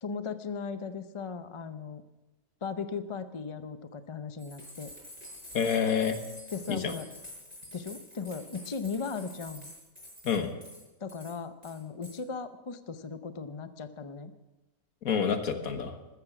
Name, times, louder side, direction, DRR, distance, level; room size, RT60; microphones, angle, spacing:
voice 1, 0.0-2.0 2.6-4.9 6.5-7.0 7.7-9.7 11.0-14.3, left 5 dB, 35° left, 10 dB, 0.5 m, -37 dB
sound 1, 4.4-10.8 11.1-11.3 11.6-12.2, left 1 dB, 25° right, 5.9 m, -48 dB
voice 2, 5.5-6.2 6.7-6.9 10.2-10.5 15.0-16.0, left 7 dB, 70° left, 7 dB, 1.8 m, -28 dB
14.0 x 14.0 x 6.1 m, 1.1 s
omnidirectional pair, 1.6 m